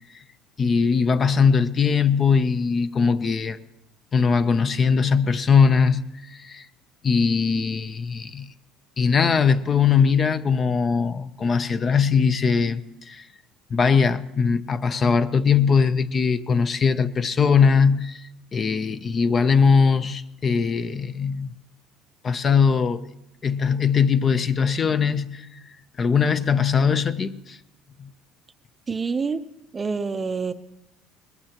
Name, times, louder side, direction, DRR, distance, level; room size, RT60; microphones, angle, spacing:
voice 1, 0.6-3.6 4.1-6.7 7.0-8.5 9.0-13.3 13.7-21.6 22.2-23.0 23.4-25.5 26.0-27.6 28.0-28.1, left 5 dB, 30° left, 0.5 m, -20 dB
voice 2, 28.9-29.4 29.7-30.5, right 5 dB, 20° right, 0.6 m, -26 dB
21.5 x 20.0 x 2.9 m
cardioid pair, 145°, 0 cm